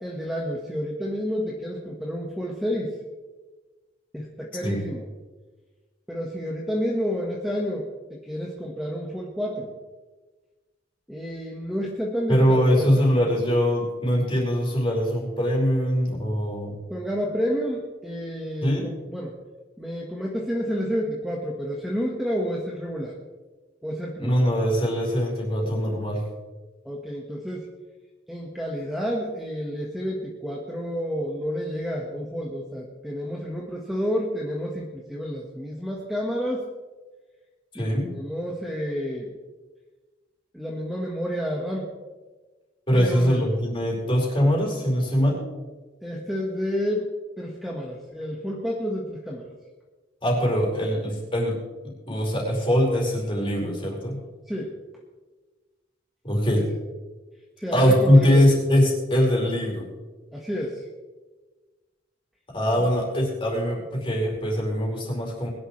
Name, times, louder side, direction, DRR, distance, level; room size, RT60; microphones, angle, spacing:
voice 1, 0.0-2.9 4.1-5.1 6.1-9.7 11.1-13.1 16.9-19.3 19.8-23.1 23.8-24.4 26.8-27.7 28.3-36.7 37.7-39.3 40.5-41.9 42.9-43.5 46.0-47.1 47.4-49.5 54.5-54.7 56.5-56.6 57.6-58.5 60.3-60.9 62.8-62.9, equal, ahead, -3 dB, 1.5 m, -30 dB
voice 2, 12.3-16.8 18.6-18.9 24.2-26.2 37.7-38.1 42.9-45.4 50.2-54.2 56.2-56.7 57.7-59.9 62.5-65.5, equal, 30° left, -3 dB, 4.8 m, -22 dB
21.0 x 11.5 x 3.3 m, 1.3 s
head